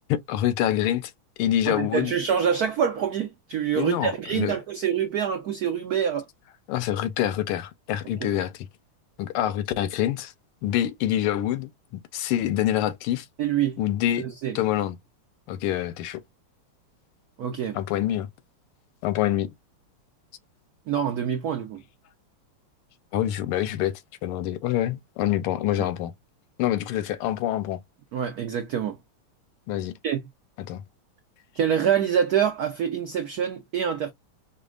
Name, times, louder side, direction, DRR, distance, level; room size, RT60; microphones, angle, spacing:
voice 1, 0.1-1.1 1.4-2.1 3.8-4.6 6.7-8.7 9.2-10.3 10.6-11.7 12.1-13.3 13.8-14.3 14.5-15.0 15.5-16.2 17.7-18.3 19.0-19.5 23.1-23.9 24.2-26.1 26.6-27.8 29.7-29.9 30.6-30.8, left 12 dB, 85° left, 1.5 m, -26 dB
voice 2, 1.7-6.2 8.2-8.3 13.4-13.8 14.2-14.6 17.4-17.8 20.9-21.8 25.8-25.9 28.1-29.0 30.0-30.2 31.6-34.1, right 8 dB, 85° right, 0.8 m, -26 dB
5.2 x 2.3 x 2.4 m
omnidirectional pair, 2.4 m